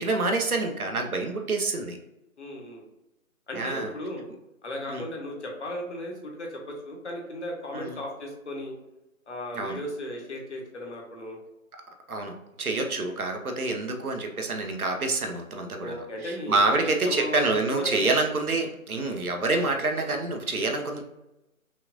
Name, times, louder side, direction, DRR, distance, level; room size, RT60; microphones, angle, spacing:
voice 1, 0.0-2.0 3.5-3.9 4.9-5.0 7.7-8.0 9.5-9.8 12.1-15.9 16.2-21.0, right 3 dB, 85° right, 3 dB, 1.1 m, -27 dB
voice 2, 2.4-2.8 3.5-4.2 4.6-8.7 9.3-11.4 12.9-13.1 13.6-13.8 15.8-18.1 19.0-19.2, left 1 dB, 55° left, 0 dB, 1.4 m, -36 dB
5.6 x 2.4 x 2.6 m, 0.94 s
figure-of-eight pair, 155°, 43 cm